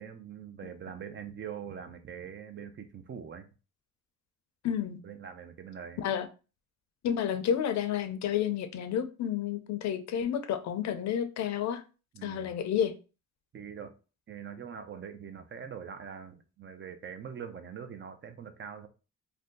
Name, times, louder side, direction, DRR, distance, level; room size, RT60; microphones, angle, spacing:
voice 1, 0.0-3.5 5.0-6.1 12.1-12.6 13.5-13.9 14.3-18.9, right 7 dB, 40° right, 0.5 m, -43 dB
voice 2, 4.6-5.0 6.0-6.3 7.0-11.8 12.2-12.9, left 9 dB, 65° left, 0.5 m, -30 dB
2.6 x 2.2 x 3.5 m
cardioid pair, 90°, 30 cm